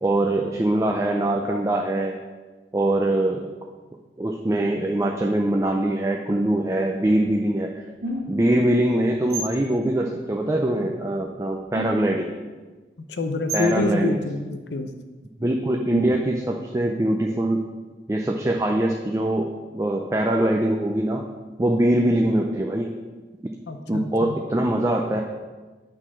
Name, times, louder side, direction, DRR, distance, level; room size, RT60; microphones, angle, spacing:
voice 1, 0.0-2.1 2.7-3.4 4.2-7.7 8.3-12.3 13.5-14.2 15.4-17.6 18.1-19.5 19.7-21.2 21.6-22.9 23.9-25.2, right 1 dB, 15° right, 1 dB, 0.4 m, -23 dB
sound 1, 7.0-7.3 8.0-8.5 9.2-9.6 11.2-11.3 11.5-12.3 13.5-13.8 15.9-16.4, equal, 65° right, 1.8 m, -32 dB
voice 2, 13.1-14.9 23.7-24.3, left 2 dB, 80° left, 7 dB, 0.7 m, -26 dB
8.7 x 3.9 x 6.0 m, 1.3 s
head